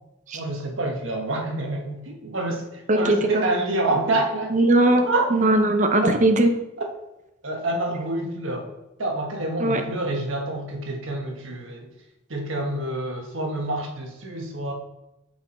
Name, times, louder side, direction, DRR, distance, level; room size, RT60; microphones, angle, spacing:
voice 1, 0.3-4.5 5.1-5.3 6.0-6.2 7.4-8.7 9.0-11.9 12.3-14.7, right 2 dB, 80° right, 2 dB, 1.2 m, -27 dB
voice 2, 2.9-3.4 4.5-6.5 9.6-9.8, right 1 dB, 40° right, 6 dB, 0.7 m, -19 dB
5.8 x 4.7 x 4.2 m, 0.93 s
head